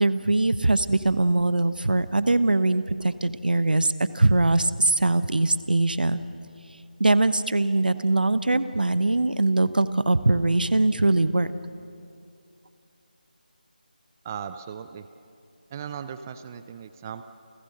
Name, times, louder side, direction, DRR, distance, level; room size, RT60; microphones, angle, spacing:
voice 1, 0.0-6.2 7.0-11.5, right 2 dB, 70° right, 14 dB, 1.0 m, -22 dB
voice 2, 14.2-15.1 15.7-17.2, right 8 dB, 20° right, 10 dB, 0.4 m, -37 dB
29.5 x 15.0 x 6.5 m, 2.5 s
figure-of-eight pair, 160°, 5 cm